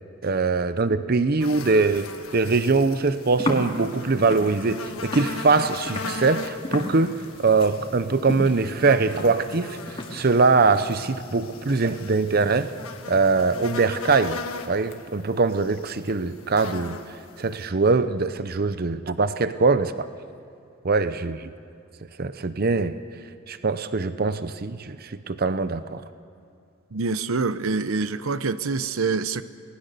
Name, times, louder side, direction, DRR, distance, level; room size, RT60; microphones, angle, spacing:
voice 1, 0.2-2.1 2.3-12.7 13.1-14.4 14.7-20.1 20.8-21.5 22.2-23.0 23.5-26.0, right 4 dB, 45° right, 12 dB, 0.7 m, -22 dB
sound 1, 1.4-17.7, left 4 dB, 85° left, 1.6 m, -39 dB
sound 2, 3.2-13.9, left 1 dB, 25° left, 2.4 m, -36 dB
voice 2, 26.9-29.4, right 4 dB, 80° right, 13 dB, 0.8 m, -26 dB
29.5 x 19.5 x 6.8 m, 2.6 s
head